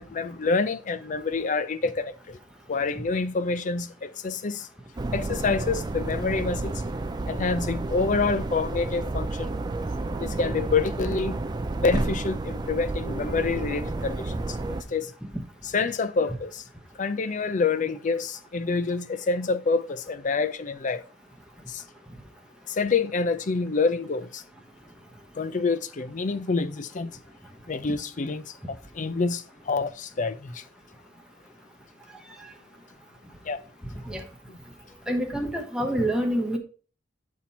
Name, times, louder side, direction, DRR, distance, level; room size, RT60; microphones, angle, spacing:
voice 1, 0.0-2.4 2.7-4.7 5.1-6.8 7.3-9.6 10.2-11.3 11.8-14.6 14.9-15.1 15.7-16.6 17.0-21.0 21.7-21.8 22.7-24.4 25.4-27.1 27.7-30.6 33.4-33.6, left 4 dB, 40° left, 0.5 m, -27 dB
sound 1, 5.0-14.8, right 2 dB, 20° right, 0.4 m, -31 dB
voice 2, 35.1-36.6, right 1 dB, 5° right, 1.0 m, -26 dB
7.5 x 4.2 x 4.3 m
head